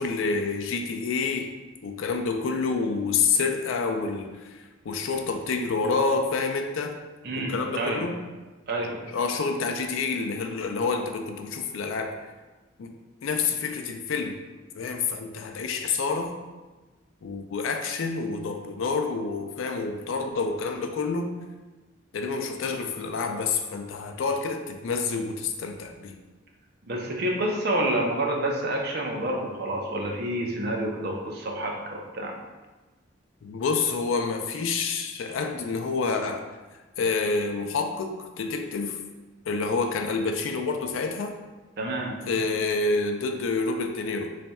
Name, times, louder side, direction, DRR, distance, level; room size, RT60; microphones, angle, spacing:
voice 1, 0.0-1.6 1.8-7.0 7.4-8.2 9.1-12.1 12.8-13.0 13.2-14.4 14.7-16.3 17.2-21.4 22.1-26.2 33.4-36.4 37.0-39.0 39.5-41.3 42.3-44.4, left 4 dB, 80° left, 4 dB, 0.4 m, -28 dB
voice 2, 7.2-8.1 8.7-9.0 26.9-32.4 41.8-42.2, right 1 dB, 50° right, 0 dB, 0.5 m, -28 dB
3.3 x 2.3 x 4.0 m, 1.2 s
head